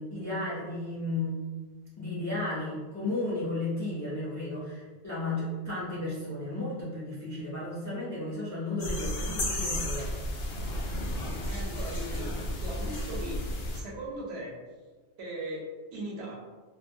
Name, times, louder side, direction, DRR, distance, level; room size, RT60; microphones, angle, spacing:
voice 1, 0.0-1.3 2.0-10.1, left 2 dB, 30° left, -7 dB, 0.3 m, -34 dB
sound 1, 8.8-13.8, left 1 dB, 70° left, 0.8 m, -33 dB
voice 2, 11.2-12.3 12.6-13.4 13.7-14.6 15.2-16.3, right 1 dB, 75° right, -3 dB, 0.9 m, -38 dB
2.5 x 2.1 x 2.6 m, 1.3 s
omnidirectional pair, 1.1 m